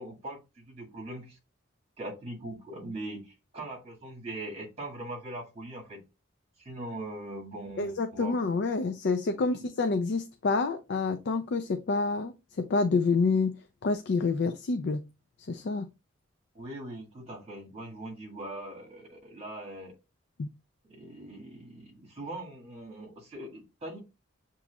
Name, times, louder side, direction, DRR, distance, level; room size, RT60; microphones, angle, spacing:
voice 1, 0.0-1.4 2.0-6.0 6.6-8.4 9.5-9.6 16.5-19.9 20.9-24.0, right 1 dB, 30° right, 1.8 m, -41 dB
voice 2, 7.8-13.5 13.8-15.0 15.5-15.9 20.4-20.5, left 4 dB, 55° left, 0.4 m, -28 dB
7.0 x 3.0 x 2.3 m
head